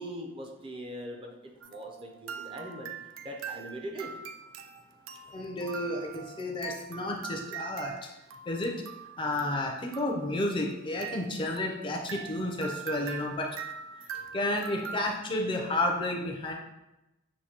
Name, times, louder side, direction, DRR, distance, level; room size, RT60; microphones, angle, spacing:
voice 1, 0.0-2.9 3.2-4.1, right 1 dB, 25° right, 1 dB, 0.5 m, -41 dB
sound 1, 1.6-15.0, right 7 dB, 80° right, 0.4 m, -43 dB
voice 2, 5.3-8.1 8.5-8.8 9.2-13.5 14.0-16.5, left 1 dB, 25° left, 1 dB, 0.5 m, -31 dB
6.4 x 2.6 x 2.8 m, 0.95 s
head